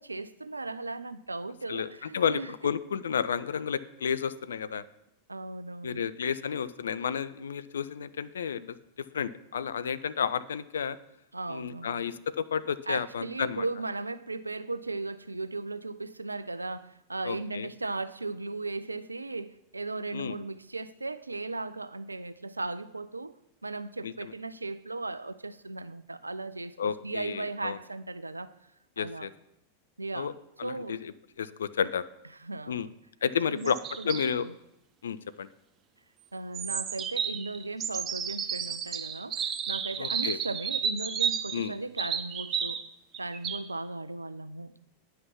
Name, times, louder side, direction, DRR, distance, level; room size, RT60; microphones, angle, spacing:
voice 1, 0.0-2.5 5.3-6.1 11.3-12.1 12.9-23.4 23.6-28.5 29.0-29.3 30.0-30.3 30.6-31.0 32.4-32.9 33.5-34.5 36.3-42.8 43.2-44.8, right 2 dB, 80° right, 0.4 m, -37 dB
voice 2, 2.1-4.8 5.8-8.8 9.1-11.0 11.5-13.6 17.2-17.7 20.1-20.4 24.0-24.1 26.8-27.8 29.0-29.3 30.1-30.3 30.6-31.1 31.4-32.0 32.7-32.9 33.2-33.8 34.0-34.5 35.0-35.5 40.0-40.4 41.5-41.7, left 7 dB, 65° left, 0.4 m, -31 dB
sound 1, 33.6-34.3 36.5-42.8 43.1-43.6, right 7 dB, 30° right, 0.6 m, -32 dB
9.4 x 5.7 x 5.8 m
figure-of-eight pair, 90°, 0 cm